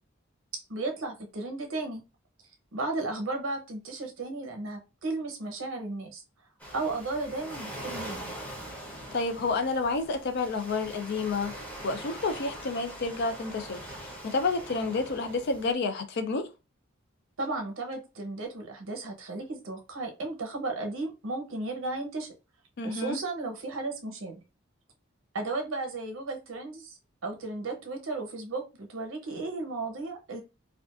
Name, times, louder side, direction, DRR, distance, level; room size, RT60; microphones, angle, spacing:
voice 1, 0.7-2.0 2.7-6.2 6.7-8.4 17.4-22.3 22.8-24.3 25.3-26.9 27.2-30.4, right 2 dB, 75° right, 0.7 m, -34 dB
Waves surf, 6.6-15.7, right 1 dB, 5° left, 0.6 m, -42 dB
voice 2, 9.1-11.5 11.8-16.5 22.8-23.2, left 3 dB, 55° left, 0.4 m, -30 dB
2.5 x 2.3 x 2.3 m
head